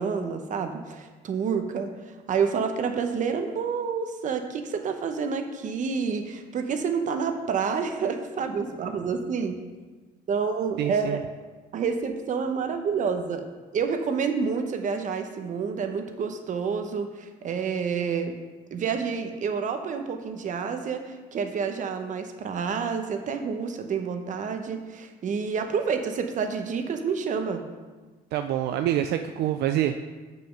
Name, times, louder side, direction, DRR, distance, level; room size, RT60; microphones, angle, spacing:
voice 1, 0.0-1.9 2.3-9.5 10.3-11.3 11.7-13.5 13.7-18.4 18.7-27.6, right 6 dB, 50° right, 7 dB, 0.9 m, -28 dB
voice 2, 10.8-11.2 28.3-30.0, right 11 dB, 75° right, 7 dB, 0.4 m, -26 dB
6.9 x 6.3 x 5.2 m, 1.3 s
cardioid pair, 110°, 17 cm